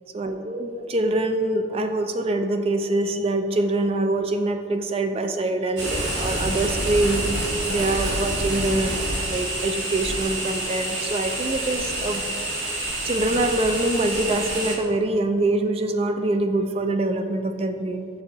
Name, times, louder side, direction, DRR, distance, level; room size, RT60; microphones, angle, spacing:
voice 1, 0.1-7.2 7.7-9.0 9.3-12.2 13.0-18.1, right 2 dB, 30° right, 6 dB, 0.3 m, -24 dB
sound 1, 5.8-14.8, right 1 dB, 70° right, 1.4 m, -27 dB
6.7 x 5.6 x 2.9 m, 2.4 s
head